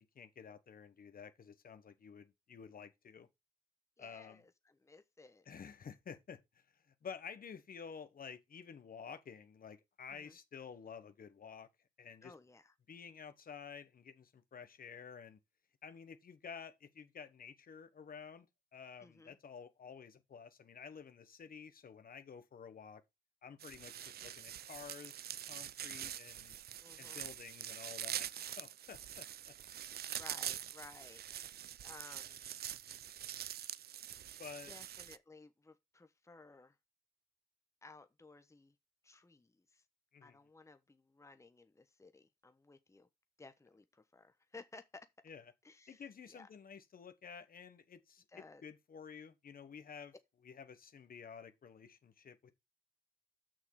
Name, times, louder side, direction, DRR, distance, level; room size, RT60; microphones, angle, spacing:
voice 1, 0.0-3.3 4.0-4.4 5.5-11.7 12.0-12.3 12.9-15.4 15.8-18.5 18.7-23.0 23.4-26.6 27.0-29.5 34.4-34.7 40.1-40.4 45.2-45.4 45.9-50.1 50.4-52.5, left 6 dB, 60° left, 1.2 m, -51 dB
voice 2, 4.0-5.5 10.1-10.4 12.2-12.7 19.0-19.4 26.8-27.2 30.1-32.4 34.7-36.8 37.8-38.7 39.0-39.8 40.2-43.1 43.4-45.1 45.6-46.0 46.3-46.5 48.3-48.6, left 3 dB, 15° left, 1.0 m, -57 dB
sound 1, 23.6-35.2, right 10 dB, 75° right, 0.5 m, -45 dB
6.4 x 6.2 x 4.7 m
cardioid pair, 80°, 17 cm